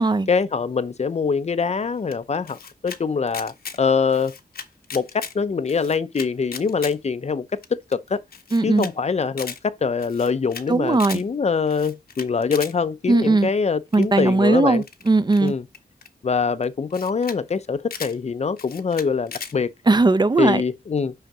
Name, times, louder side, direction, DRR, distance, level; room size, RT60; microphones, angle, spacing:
voice 1, 0.3-2.6 2.8-4.3 4.9-8.2 8.6-14.8 15.4-15.7 16.2-19.7 20.4-21.1, left 5 dB, 45° left, 0.6 m, -24 dB
Camera, 2.1-3.0 3.3-3.8 4.1-5.3 5.7-6.9 7.3-7.4 7.6-7.7 7.9-8.0 8.3-8.9 9.2-9.6 10.0-10.6 10.9-11.2 11.7-12.7 13.9-14.2 14.8-16.1 16.6-16.7 16.9-17.4 17.6-18.1 18.6-19.5, left 6 dB, 75° left, 1.1 m, -37 dB
voice 2, 8.5-8.9 10.7-11.2 13.1-13.5 13.9-15.5 19.9-20.6, right 3 dB, 25° right, 0.6 m, -18 dB
6.4 x 5.7 x 6.0 m
wide cardioid pair, 155°, 16 cm